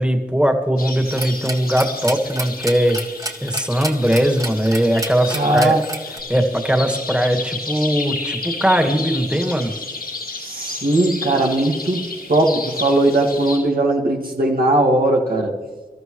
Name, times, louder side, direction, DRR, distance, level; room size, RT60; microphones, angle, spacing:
voice 1, 0.0-3.0 3.4-5.7 6.3-9.7, equal, 5° right, 4 dB, 2.0 m, -19 dB
sound 1, 0.8-13.6, left 3 dB, 90° left, 4.7 m, -32 dB
sound 2, 1.1-6.2, right 1 dB, 20° right, 1.7 m, -30 dB
voice 2, 5.3-5.8 10.4-15.5, right 1 dB, 75° right, -1 dB, 2.0 m, -18 dB
25.5 x 13.0 x 3.2 m, 1.3 s
wide cardioid pair, 45°, 15 cm